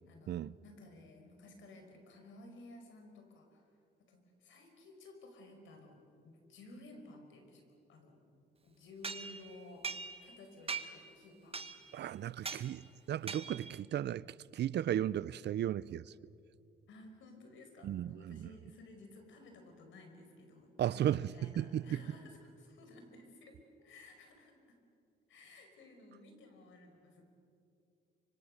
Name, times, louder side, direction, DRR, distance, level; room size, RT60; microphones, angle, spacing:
voice 1, 0.1-3.7 4.0-8.2 8.6-11.7 12.2-12.7 13.7-13.8 16.9-24.8 25.3-27.3, left 2 dB, 75° left, 4.9 m, -55 dB
sound 1, 9.0-10.4 10.7-11.1 11.5-12.0 12.4-12.7 13.3-13.8, right 5 dB, 30° right, 1.4 m, -42 dB
voice 2, 11.9-14.3 14.5-16.0 17.8-18.4 20.8-21.3 21.6-22.0, right 11 dB, 60° right, 0.5 m, -35 dB
25.5 x 25.0 x 6.6 m
cardioid pair, 90°, 20 cm